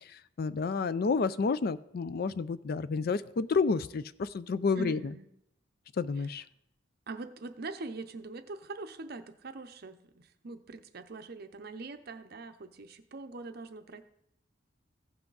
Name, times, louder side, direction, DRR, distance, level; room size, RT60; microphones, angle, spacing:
voice 1, 0.1-5.1 6.0-6.4, left 4 dB, 50° left, 16 dB, 0.4 m, -30 dB
voice 2, 4.7-5.3 6.2-6.3 7.1-14.0, right 3 dB, 55° right, 9 dB, 0.7 m, -43 dB
15.5 x 5.8 x 3.9 m, 0.76 s
head